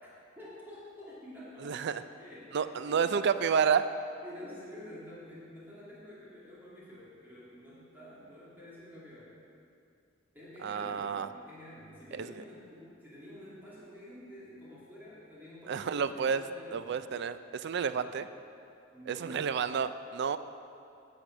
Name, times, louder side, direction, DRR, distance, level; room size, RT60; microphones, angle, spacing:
voice 1, 0.4-3.2 4.2-9.4 10.3-17.0 18.0-18.2 18.9-19.3, left 1 dB, 10° right, -10 dB, 2.7 m, -49 dB
voice 2, 1.6-2.0 2.5-3.8 10.6-11.3 12.1-12.4 15.7-16.4 16.7-18.3 19.1-20.4, right 6 dB, 60° right, 12 dB, 0.4 m, -30 dB
9.9 x 8.0 x 6.2 m, 2.6 s
head